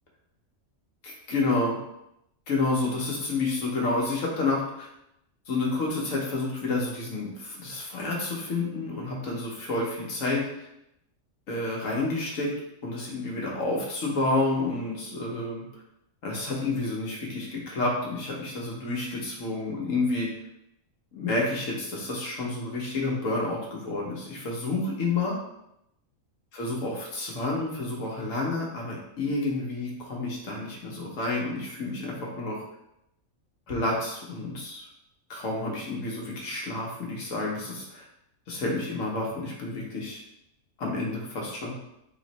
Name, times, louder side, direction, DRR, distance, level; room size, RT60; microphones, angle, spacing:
voice 1, 1.0-1.8 2.5-4.9 5.5-10.7 11.5-12.5 12.8-15.6 16.2-20.3 21.1-25.4 26.5-32.6 33.7-34.8 35.3-38.0 38.5-40.2 40.8-41.7, left 2 dB, 75° left, -3 dB, 1.5 m, -29 dB
3.8 x 3.1 x 4.1 m, 0.81 s
omnidirectional pair, 1.4 m